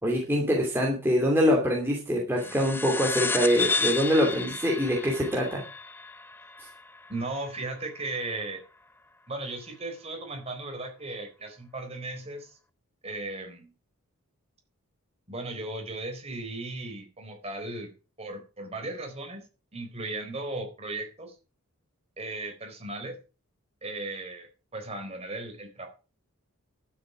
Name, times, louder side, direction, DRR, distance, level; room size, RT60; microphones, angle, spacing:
voice 1, 0.0-5.6, equal, 10° right, -2 dB, 2.7 m, -24 dB
sound 1, 2.4-7.3, left 4 dB, 10° left, 0.6 m, -32 dB
voice 2, 7.1-8.6 9.3-12.6 13.0-13.7 15.3-17.9 18.2-19.5 19.7-21.3 22.2-23.1 23.8-24.5 24.7-25.9, right 2 dB, 30° right, 3 dB, 4.0 m, -36 dB
12.0 x 8.3 x 6.1 m, 0.34 s
head